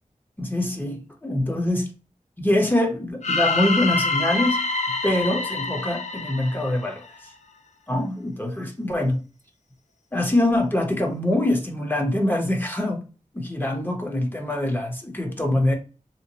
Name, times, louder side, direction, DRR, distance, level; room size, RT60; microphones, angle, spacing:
voice 1, 0.4-1.9 2.4-4.6 5.0-7.3 7.9-9.2 10.1-13.0 13.3-15.7, left 1 dB, 15° left, 0.8 m, -24 dB
sound 1, 3.2-7.3, left 3 dB, 60° left, 0.4 m, -26 dB
2.9 x 2.0 x 2.6 m
wide cardioid pair, 60°, 13 cm